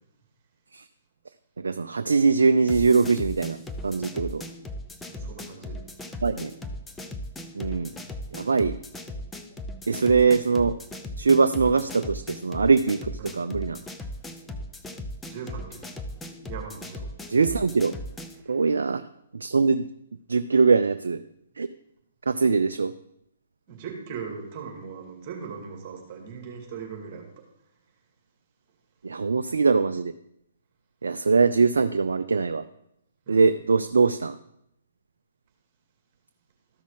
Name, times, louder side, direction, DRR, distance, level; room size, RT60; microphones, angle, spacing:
voice 1, 1.6-4.4 6.2-6.5 7.5-8.0 8.3-8.8 9.9-10.8 11.2-13.8 17.3-17.9 18.5-19.0 19.3-19.9 20.3-21.2 21.6-21.7 22.3-22.9 29.0-30.1 31.0-32.7 33.3-34.4, right 4 dB, 70° right, 9 dB, 0.4 m, -22 dB
sound 1, 2.7-18.4, left 1 dB, 10° left, 0.6 m, -38 dB
voice 2, 5.1-5.8 7.9-8.1 13.2-13.4 15.2-15.8 16.5-17.1 18.5-18.6 23.7-27.3 33.3-33.5, right 6 dB, 35° right, 1 dB, 2.3 m, -39 dB
13.5 x 6.1 x 3.8 m, 0.78 s
figure-of-eight pair, 125°, 0 cm